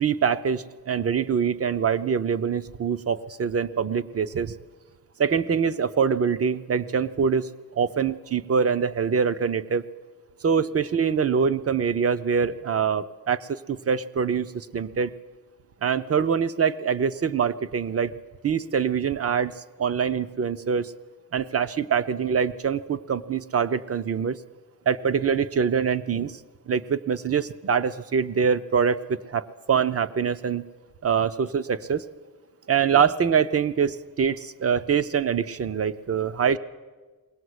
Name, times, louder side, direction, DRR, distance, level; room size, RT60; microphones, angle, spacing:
voice 1, 0.0-4.5 5.2-9.8 10.4-15.1 15.8-18.2 18.4-20.9 21.3-24.4 24.9-26.4 26.7-30.6 31.0-32.1 32.7-36.6, right 6 dB, 35° right, 14 dB, 0.6 m, -24 dB
21.5 x 18.0 x 8.0 m, 1.3 s
wide cardioid pair, 180°, 40 cm